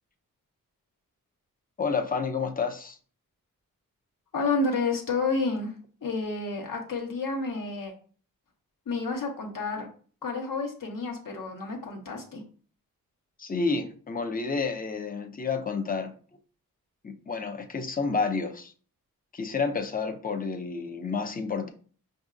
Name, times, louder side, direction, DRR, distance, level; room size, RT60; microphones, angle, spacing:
voice 1, 1.8-3.0 13.4-16.1 17.0-18.7 19.3-21.7, left 4 dB, 25° left, 5 dB, 0.6 m, -30 dB
voice 2, 4.3-5.7 6.0-7.9 8.9-9.9 10.2-12.4, left 3 dB, 65° left, 2 dB, 1.2 m, -30 dB
5.5 x 2.7 x 2.5 m, 0.42 s
cardioid pair, 55°, 36 cm